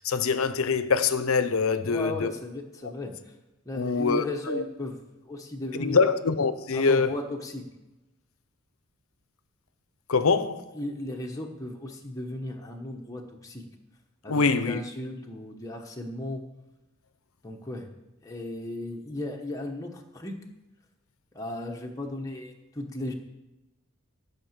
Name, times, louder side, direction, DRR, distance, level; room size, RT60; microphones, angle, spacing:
voice 1, 0.0-2.3 3.8-4.6 5.8-7.1 10.1-10.6 14.3-14.8, left 4 dB, 80° left, 0.7 m, -24 dB
voice 2, 1.8-3.3 3.6-6.1 6.7-7.7 10.7-13.7 14.2-16.4 17.4-17.9 18.2-20.4 21.3-23.1, left 1 dB, 15° left, 1.0 m, -36 dB
12.5 x 5.9 x 7.3 m
head